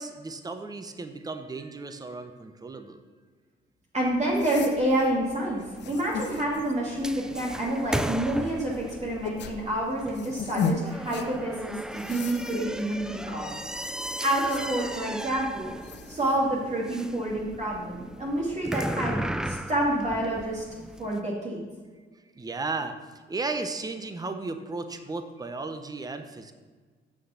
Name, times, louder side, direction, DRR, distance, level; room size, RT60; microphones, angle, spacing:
voice 1, 0.0-3.0 22.4-23.0 23.3-26.5, right 3 dB, 20° right, 8 dB, 0.8 m, -35 dB
voice 2, 3.9-13.5 14.2-15.7 16.1-19.2 19.4-20.6 21.0-21.6, right 1 dB, 35° right, -5 dB, 2.4 m, -28 dB
sound 1, 4.0-16.4, left 5 dB, 60° left, 0.8 m, -38 dB
sound 2, 5.7-21.2, right 1 dB, 5° right, 0.4 m, -36 dB
7.5 x 6.5 x 5.7 m, 1.5 s
cardioid pair, 90°, 20 cm